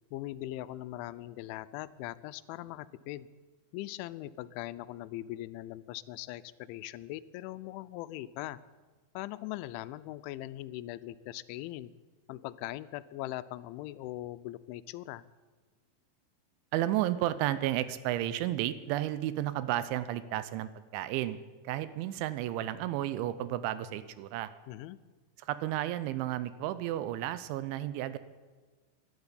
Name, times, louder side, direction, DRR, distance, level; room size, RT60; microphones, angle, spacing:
voice 1, 0.1-3.3 3.7-8.6 9.1-11.9 12.3-15.2 24.7-25.0, left 15 dB, 90° left, 15 dB, 3.0 m, -40 dB
voice 2, 16.7-21.4 21.6-24.5 25.4-28.2, right 13 dB, 85° right, 14 dB, 3.1 m, -32 dB
12.0 x 12.0 x 9.8 m, 1.4 s
omnidirectional pair, 5.3 m